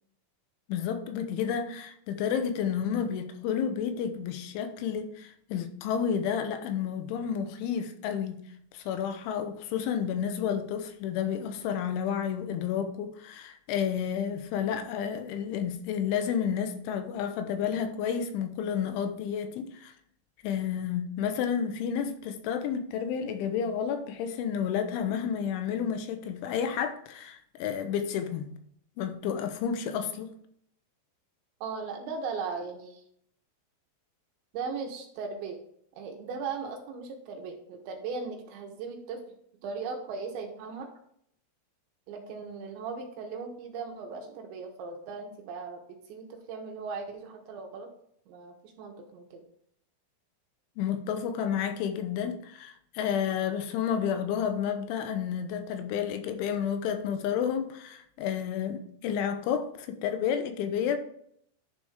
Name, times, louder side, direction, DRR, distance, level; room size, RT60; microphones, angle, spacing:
voice 1, 0.7-8.4 8.7-19.9 20.4-28.5 29.0-30.3 50.8-61.0, left 8 dB, 85° left, 3.2 m, -31 dB
voice 2, 31.6-33.0 34.5-35.6 36.0-39.3 39.6-40.9 42.1-45.8 46.1-47.9 48.3-49.4, right 5 dB, 75° right, 3.2 m, -38 dB
11.0 x 4.4 x 4.9 m
omnidirectional pair, 5.5 m